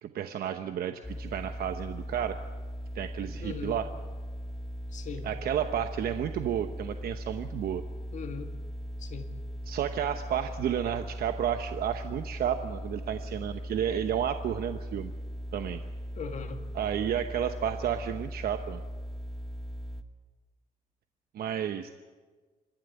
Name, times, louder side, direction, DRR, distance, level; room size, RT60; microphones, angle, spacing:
voice 1, 0.0-2.4 2.9-3.9 5.2-7.8 9.7-15.1 15.5-15.8 16.7-18.8 21.3-21.9, right 9 dB, 85° right, 8 dB, 0.9 m, -31 dB
sound 1, 1.0-20.0, equal, ahead, 1.2 m, -39 dB
voice 2, 3.4-3.8 4.9-5.3 8.1-8.5 9.0-9.3 16.2-16.6, left 6 dB, 55° left, 6 dB, 2.0 m, -39 dB
26.0 x 11.5 x 9.8 m, 1.4 s
cardioid pair, 140°, 15 cm